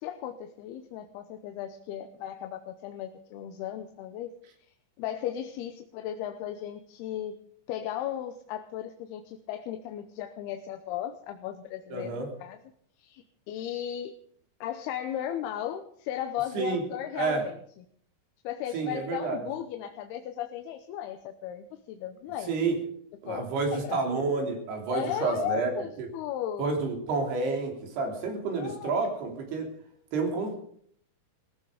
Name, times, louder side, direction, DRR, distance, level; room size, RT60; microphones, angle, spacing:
voice 1, 0.0-4.3 5.0-7.3 7.7-12.6 13.0-14.1 14.6-17.6 18.4-22.5 23.3-24.0 24.9-26.7 28.6-28.9, left 11 dB, 80° left, 7 dB, 2.9 m, -36 dB
voice 2, 11.9-12.3 16.5-16.8 17.2-17.4 18.7-19.4 22.5-22.8 23.2-25.7 26.0-26.1 26.6-29.7 30.1-30.6, right 4 dB, 85° right, 3 dB, 5.2 m, -29 dB
18.5 x 15.0 x 5.0 m, 0.64 s
omnidirectional pair, 4.6 m